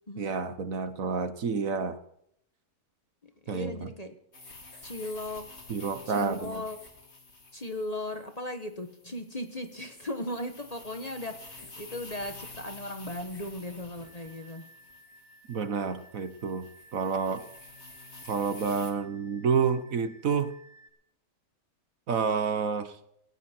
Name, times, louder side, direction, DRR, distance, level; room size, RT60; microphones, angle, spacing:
voice 1, 0.2-2.0 3.5-3.9 5.7-6.6 15.5-17.4 18.3-20.5 22.1-23.0, right 5 dB, 60° right, 11 dB, 1.5 m, -29 dB
voice 2, 3.2-4.2 4.8-5.6 6.1-6.8 7.5-14.7, left 1 dB, 25° left, 7 dB, 1.3 m, -37 dB
sound 1, 4.3-18.9, left 3 dB, 45° left, 3.0 m, -49 dB
sound 2, 13.3-20.9, equal, 10° right, 7.2 m, -57 dB
18.0 x 16.5 x 4.5 m, 0.71 s
omnidirectional pair, 1.6 m